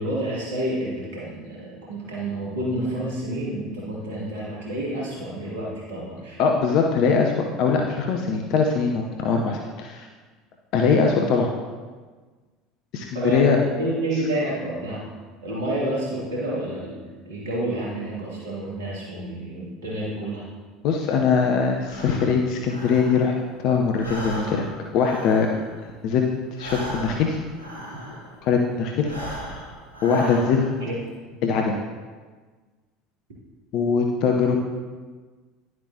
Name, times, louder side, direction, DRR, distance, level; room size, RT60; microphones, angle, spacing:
voice 1, 0.0-6.4 13.1-15.1 15.4-17.0 17.2-20.4 30.1-30.5 30.8-31.0, right 1 dB, 65° right, -6 dB, 2.6 m, -29 dB
voice 2, 6.4-7.3 7.6-10.1 10.7-11.5 12.9-13.6 20.8-23.3 23.6-24.7 24.9-25.5 26.0-26.3 26.6-27.4 28.4-29.1 30.0-30.6 31.4-31.8 33.7-34.6, left 5 dB, 50° left, 2 dB, 0.7 m, -21 dB
Breathing, 21.8-23.6 23.9-28.5 28.9-30.9, equal, 85° right, 2.8 m, -37 dB
11.0 x 7.7 x 2.8 m, 1.4 s
figure-of-eight pair, 70°, 0 cm